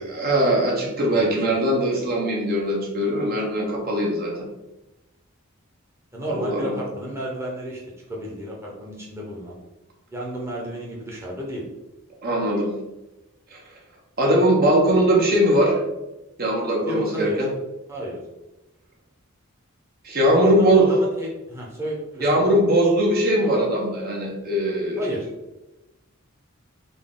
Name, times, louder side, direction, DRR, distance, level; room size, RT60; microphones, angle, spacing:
voice 1, 0.0-4.5 6.3-6.8 12.2-12.7 13.5-13.6 14.2-15.8 16.4-17.5 20.0-20.9 22.2-25.0, right 1 dB, 45° right, -1 dB, 0.7 m, -20 dB
voice 2, 1.1-1.6 6.1-7.8 8.1-9.6 10.1-11.6 16.9-17.5 17.9-18.2 20.4-22.5 25.0-25.3, equal, 10° right, -4 dB, 0.7 m, -31 dB
3.9 x 2.3 x 3.7 m, 0.99 s
head